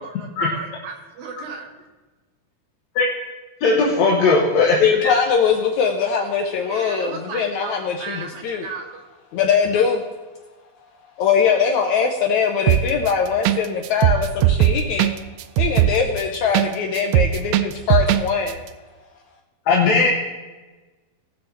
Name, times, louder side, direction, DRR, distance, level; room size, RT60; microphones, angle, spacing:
voice 1, 0.0-1.7 6.7-9.0, right 5 dB, 60° right, 2 dB, 2.6 m, -35 dB
voice 2, 3.6-4.9 19.7-20.1, left 4 dB, 60° left, -3 dB, 2.0 m, -17 dB
voice 3, 4.8-8.7 9.3-10.0 11.2-15.1 15.6-18.6, left 6 dB, 80° left, 3 dB, 1.7 m, -21 dB
sound 1, 12.7-13.1 13.4-13.6 13.8-16.7 17.0-18.2 18.5-18.6, right 13 dB, 85° right, 2.4 m, -17 dB
18.5 x 6.4 x 4.4 m, 1.2 s
omnidirectional pair, 4.3 m